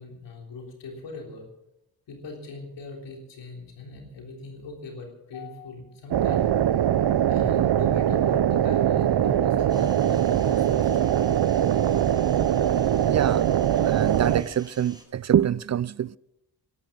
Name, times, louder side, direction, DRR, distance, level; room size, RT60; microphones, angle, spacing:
voice 1, 0.0-1.5 2.1-6.5 7.3-11.1, left 3 dB, 90° left, 3.7 m, -41 dB
sound 1, 6.1-14.4, right 10 dB, 70° right, 0.8 m, -22 dB
sound 2, 9.7-15.0, right 1 dB, 10° right, 6.6 m, -49 dB
voice 2, 13.1-13.5 13.8-16.2, right 10 dB, 40° right, 0.4 m, -25 dB
12.5 x 12.0 x 7.4 m
cardioid pair, 50°, 42 cm